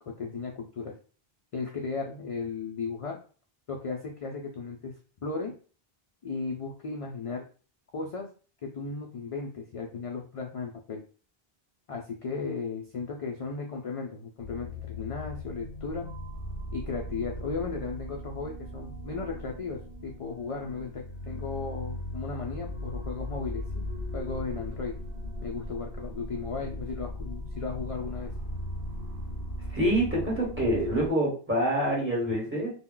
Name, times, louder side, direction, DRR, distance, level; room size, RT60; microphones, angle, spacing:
voice 1, 0.2-0.9 1.5-3.2 3.7-4.9 5.2-5.5 6.2-7.4 7.9-8.3 8.6-11.0 11.9-16.1 16.7-23.9 24.1-25.0 25.4-28.3, left 4 dB, 55° left, 0 dB, 0.4 m, -35 dB
sound 1, 14.4-31.1, left 1 dB, 60° right, 1.3 m, -38 dB
voice 2, 29.7-32.7, right 1 dB, 10° right, -5 dB, 1.1 m, -26 dB
2.2 x 2.1 x 3.7 m, 0.38 s
omnidirectional pair, 1.0 m